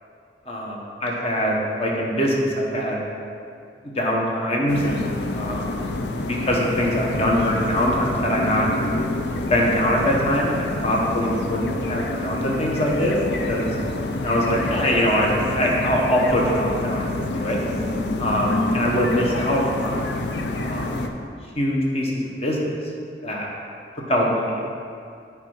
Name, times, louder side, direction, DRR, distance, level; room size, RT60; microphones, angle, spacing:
voice 1, 0.5-3.1 3.9-5.7 6.3-8.7 9.5-13.7 14.2-17.6 18.2-20.2 20.6-21.0 21.5-22.7 23.2-23.5 24.1-24.8, equal, 35° left, -2 dB, 1.2 m, -23 dB
sound 1, 4.7-21.1, left 2 dB, 75° left, 0.6 m, -27 dB
8.5 x 4.8 x 5.5 m, 2.4 s
head